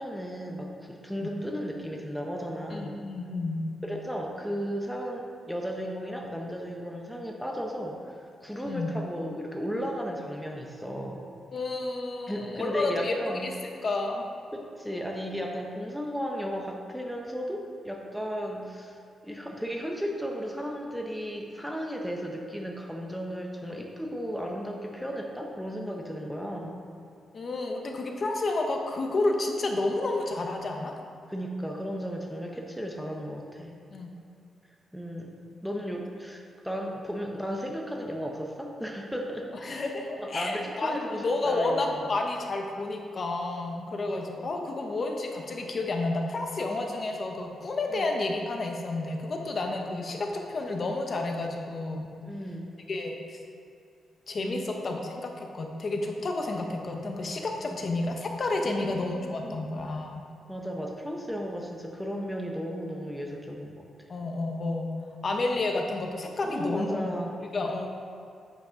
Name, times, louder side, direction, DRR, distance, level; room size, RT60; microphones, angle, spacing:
voice 1, 0.0-3.0 3.8-11.2 12.3-13.5 14.5-26.8 31.3-33.8 34.9-39.8 40.2-42.1 44.3-44.4 48.0-48.1 52.2-52.7 54.4-54.6 54.9-55.1 57.7-57.8 58.6-59.7 60.5-64.1 66.4-67.4, equal, ahead, 0 dB, 0.7 m, -35 dB
voice 2, 2.7-3.6 8.6-8.9 11.5-13.1 13.4-13.5 13.8-14.2 27.3-30.9 33.9-34.1 39.6-52.1 52.9-53.4 54.3-60.2 64.1-64.9 65.2-67.2 67.5-67.9, left 2 dB, 35° left, 2 dB, 0.8 m, -30 dB
7.8 x 5.8 x 5.0 m, 2.5 s
wide cardioid pair, 155°, 0 cm